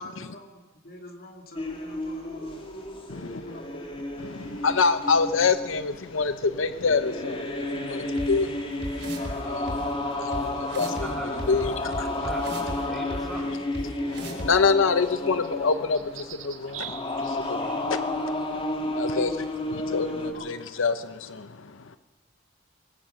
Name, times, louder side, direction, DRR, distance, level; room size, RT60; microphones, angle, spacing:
voice 1, 0.0-2.6 3.3-3.9 19.1-19.6 19.9-20.5, left 1 dB, 50° left, 2.5 m, -44 dB
sound 1, 1.6-20.3, left 1 dB, 30° left, 2.5 m, -32 dB
voice 2, 3.1-3.4 4.2-11.1 11.5-12.0 14.1-16.9 17.2-18.0 18.9-19.3 19.7-20.1 20.4-21.8, left 4 dB, 80° left, 0.8 m, -26 dB
sound 2, 8.2-8.3 8.8-9.3 9.7-9.8 10.3-10.4 10.7-11.0 11.4-12.8 13.1-13.2 13.7-13.8 14.1-14.5, right 1 dB, 60° right, 5.0 m, -34 dB
voice 3, 10.7-11.6 12.1-13.6, equal, ahead, 5.1 m, -39 dB
sound 3, 15.0-19.9, right 8 dB, 80° right, 2.1 m, -46 dB
22.5 x 19.5 x 6.7 m
head